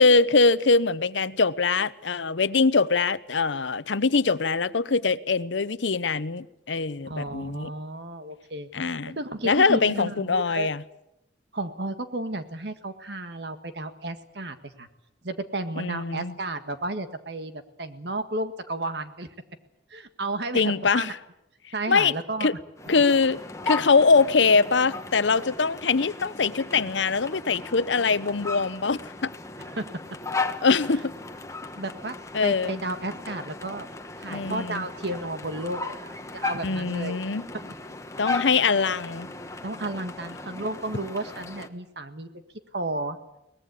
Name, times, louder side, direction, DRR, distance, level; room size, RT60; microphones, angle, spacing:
voice 1, 0.0-7.7 8.7-9.2 9.4-10.8 15.8-16.3 20.5-21.1 21.9-22.1 22.4-22.5 22.9-23.4 23.7-29.3 30.6-31.1 32.3-32.8 34.3-34.8 36.6-37.4 38.2-39.3, left 4 dB, 80° left, 0.8 m, -23 dB
voice 2, 7.0-8.7 9.1-10.7 11.5-14.9 15.2-19.3 19.9-21.1 21.7-22.5 29.7-29.9 31.8-33.9 34.2-37.2 37.5-37.7 38.4-38.5 39.6-42.4 42.7-43.2, right 2 dB, 65° right, 1.8 m, -33 dB
sound 1, 22.8-41.7, left 3 dB, 15° left, 1.2 m, -36 dB
23.0 x 19.5 x 8.4 m
head